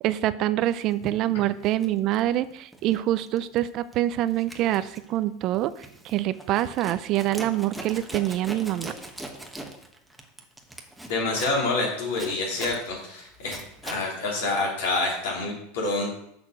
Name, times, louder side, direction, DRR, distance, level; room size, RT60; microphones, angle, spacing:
voice 1, 0.0-8.9, right 14 dB, 50° right, 14 dB, 0.4 m, -25 dB
Zipper (clothing), 0.9-1.1 1.6-3.0 3.3-3.6 3.9-14.1, right 1 dB, 5° right, 1.1 m, -41 dB
voice 2, 11.1-13.6 13.8-16.2, left 2 dB, 75° left, -3 dB, 3.8 m, -27 dB
6.6 x 6.0 x 6.0 m, 0.77 s
hypercardioid pair, 110°, 0 cm